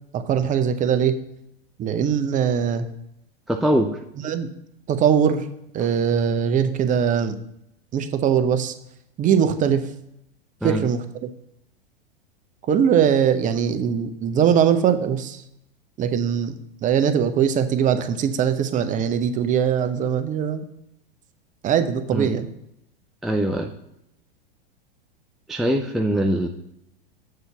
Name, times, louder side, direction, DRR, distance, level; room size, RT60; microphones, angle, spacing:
voice 1, 0.1-1.1 1.8-2.9 4.2-4.5 4.9-5.5 5.7-7.4 7.9-8.7 9.2-9.9 10.6-11.3 12.7-15.4 16.0-16.6 16.8-20.6 21.6-22.5, right 8 dB, 25° right, 10 dB, 0.7 m, -21 dB
voice 2, 3.5-3.9 10.6-10.8 22.1-22.3 23.2-23.7 25.5-26.5, equal, ahead, 2 dB, 0.3 m, -22 dB
7.8 x 4.0 x 5.8 m, 0.82 s
hypercardioid pair, 105°, 29 cm